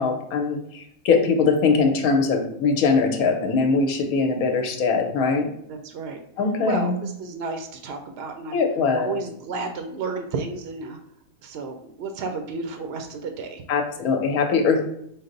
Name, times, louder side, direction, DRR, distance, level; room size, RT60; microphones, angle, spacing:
voice 1, 0.0-5.5 6.4-7.0 8.5-9.1 13.7-14.8, left 4 dB, 85° left, 4 dB, 1.2 m, -21 dB
voice 2, 5.7-6.2 6.6-8.6 9.0-11.0 11.4-13.6, right 3 dB, 70° right, 5 dB, 0.6 m, -32 dB
5.5 x 2.0 x 3.8 m, 0.74 s
omnidirectional pair, 1.5 m